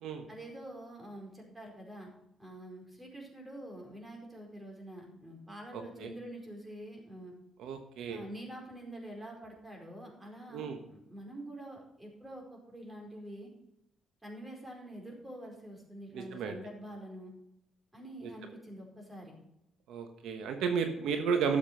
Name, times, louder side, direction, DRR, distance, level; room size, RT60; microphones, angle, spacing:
voice 1, 0.3-2.1 2.4-7.3 8.1-13.5 14.2-17.3 17.9-19.4, right 1 dB, 15° right, 0 dB, 4.8 m, -46 dB
voice 2, 5.7-6.1 7.6-8.2 10.5-10.8 16.1-16.6 18.2-18.3 19.9-21.6, right 6 dB, 85° right, 6 dB, 1.3 m, -33 dB
12.5 x 7.4 x 5.7 m, 0.82 s
cardioid pair, 90°, 0 cm